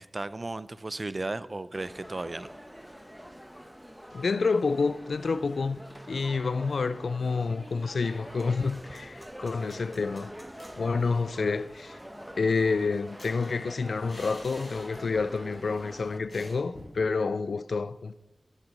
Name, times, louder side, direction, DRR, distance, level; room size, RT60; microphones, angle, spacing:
voice 1, 0.0-2.5, right 2 dB, 45° right, 0.5 m, -35 dB
sound 1, 1.7-16.2, equal, 5° right, 1.0 m, -45 dB
voice 2, 4.1-5.8 6.1-10.3 10.7-12.0 12.4-18.1, left 4 dB, 85° left, 0.3 m, -28 dB
sound 2, 10.6-11.2 11.5-11.6 11.9-15.4 15.6-15.8 16.3-17.0, left 1 dB, 55° left, 4.2 m, -48 dB
11.5 x 7.3 x 5.3 m
cardioid pair, 45°, 0 cm